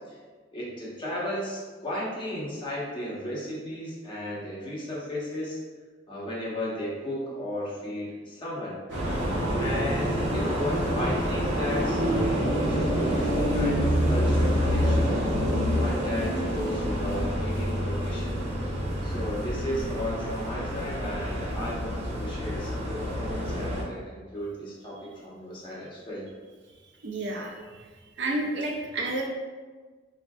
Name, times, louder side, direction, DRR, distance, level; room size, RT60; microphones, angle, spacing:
voice 1, 0.5-5.6 6.1-8.8 9.6-15.2 15.7-18.3 18.6-18.7 19.0-26.2, left 1 dB, 25° left, -7 dB, 0.9 m, -34 dB
sound 1, 8.9-23.8, equal, 90° right, 1.0 m, -27 dB
voice 2, 27.0-27.6 28.2-29.3, right 2 dB, 65° right, -1 dB, 0.5 m, -30 dB
4.4 x 2.5 x 2.3 m, 1.4 s
head